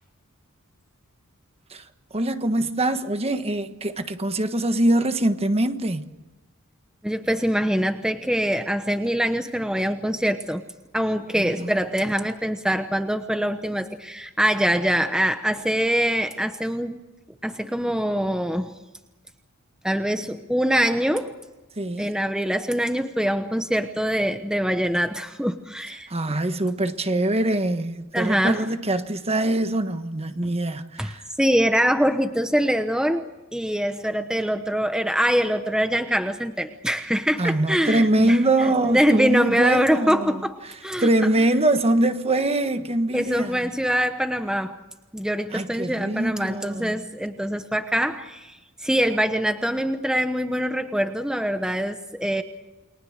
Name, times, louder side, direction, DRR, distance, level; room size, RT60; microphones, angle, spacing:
voice 1, 2.1-6.1 11.4-11.8 21.8-22.1 26.1-31.2 37.4-40.4 41.0-43.7 45.5-47.0, right 1 dB, 30° right, 1.4 m, -23 dB
voice 2, 7.0-10.6 10.9-17.0 17.4-18.7 19.8-21.3 22.0-26.1 28.1-28.6 31.0-38.4 38.8-41.1 43.1-44.8 45.1-52.4, equal, 5° right, 1.0 m, -24 dB
29.5 x 23.0 x 6.6 m
head